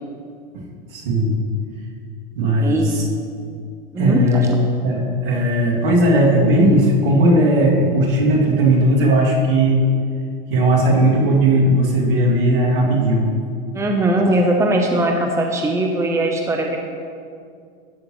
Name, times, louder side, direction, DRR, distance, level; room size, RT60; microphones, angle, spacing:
voice 1, 0.6-1.4 2.3-3.0 4.0-4.5 4.8-9.8 10.5-13.3, right 1 dB, 70° right, -3 dB, 2.7 m, -17 dB
voice 2, 2.6-2.9 3.9-4.2 13.7-16.8, right 1 dB, 10° right, 2 dB, 0.9 m, -19 dB
13.0 x 9.1 x 3.2 m, 2.2 s
hypercardioid pair, 110°, 29 cm